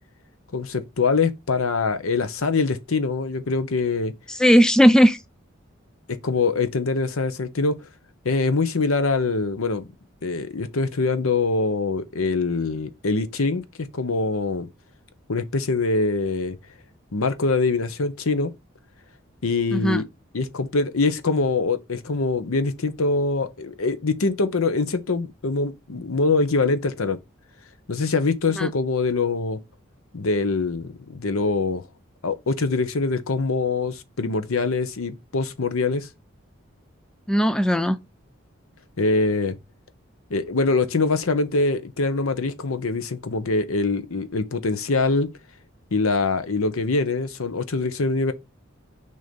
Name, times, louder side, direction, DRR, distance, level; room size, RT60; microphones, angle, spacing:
voice 1, 0.5-4.1 6.2-7.7 8.2-9.9 10.2-14.7 15.3-16.6 17.1-18.5 19.4-20.1 20.3-27.2 27.9-29.6 30.1-31.8 32.2-36.1 39.0-39.5 40.3-45.3 45.9-48.3, left 3 dB, 90° left, 0.8 m, -24 dB
voice 2, 4.3-5.2 19.7-20.0 28.6-28.7 37.3-38.0, equal, 5° left, 0.3 m, -17 dB
6.4 x 2.8 x 5.2 m
head